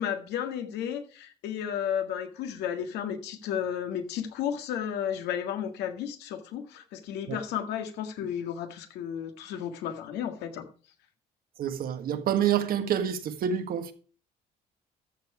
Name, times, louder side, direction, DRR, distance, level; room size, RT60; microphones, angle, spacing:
voice 1, 0.0-10.7, left 9 dB, 85° left, 1.8 m, -33 dB
voice 2, 11.6-13.9, right 9 dB, 60° right, 1.5 m, -27 dB
13.5 x 6.8 x 4.9 m
cardioid pair, 110°, 17 cm